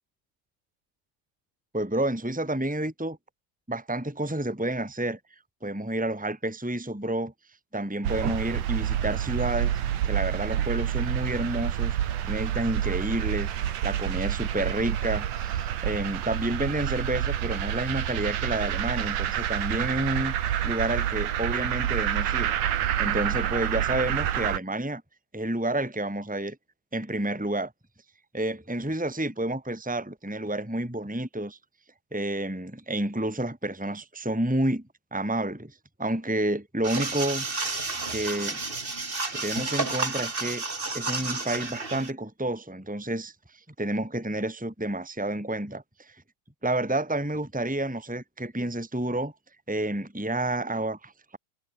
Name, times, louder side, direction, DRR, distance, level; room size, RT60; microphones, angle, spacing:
voice 1, 1.7-3.2 3.7-5.2 5.6-7.3 7.7-9.7 10.0-12.0 12.2-20.3 20.6-22.5 23.0-25.0 25.3-26.6 26.9-27.7 28.3-31.6 32.1-34.8 35.1-37.8 38.1-38.6 39.3-40.6 40.9-46.1 46.6-49.3 49.7-51.4, right 1 dB, ahead, 4.8 m, -30 dB
sound 1, 8.0-24.6, right 11 dB, 70° right, 3.1 m, -28 dB
sound 2, 36.8-42.1, right 3 dB, 20° right, 1.8 m, -31 dB
omnidirectional pair, 3.9 m